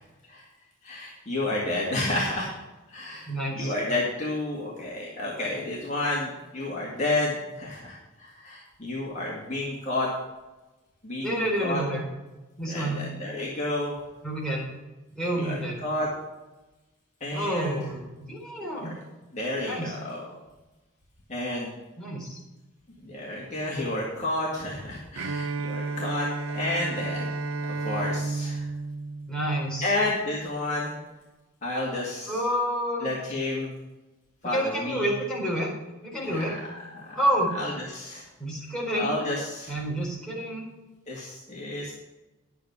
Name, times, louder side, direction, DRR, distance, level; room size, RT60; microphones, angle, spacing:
voice 1, 0.8-2.5 2.9-10.1 11.0-11.8 12.7-13.9 15.4-15.5 15.8-16.1 17.2-17.7 18.7-18.9 19.3-20.3 21.3-21.7 23.0-26.3 26.5-27.3 27.6-28.7 29.8-30.9 31.6-32.4 33.0-33.7 34.4-35.1 36.2-36.6 36.9-37.2 37.5-38.2 38.9-39.7 41.1-41.9, left 2 dB, 35° left, -5 dB, 2.1 m, -31 dB
voice 2, 3.3-3.7 11.2-12.0 12.6-13.0 14.2-14.7 15.2-15.8 17.3-18.9 19.6-20.0 22.0-22.4 29.3-29.9 32.3-33.1 34.5-35.7 36.1-36.5 37.1-37.5 38.4-39.1 39.7-40.7, right 1 dB, 5° left, -6 dB, 4.3 m, -29 dB
Bowed string instrument, 25.2-30.0, right 3 dB, 85° right, 0.6 m, -32 dB
11.0 x 8.4 x 4.8 m, 1.1 s
head